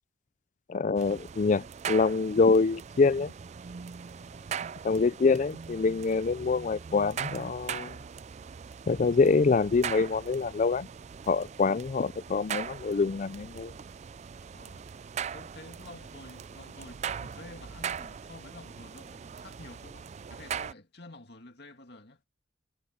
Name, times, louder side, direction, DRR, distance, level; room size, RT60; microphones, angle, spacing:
voice 1, 0.7-3.3 4.8-8.0 8.9-10.9 11.3-13.7, left 4 dB, 40° left, 0.4 m, -25 dB
sound 1, 1.0-20.7, right 7 dB, 35° right, 0.3 m, -40 dB
voice 2, 4.2-4.8 14.5-14.8 15.3-22.2, left 2 dB, 55° left, 2.3 m, -50 dB
head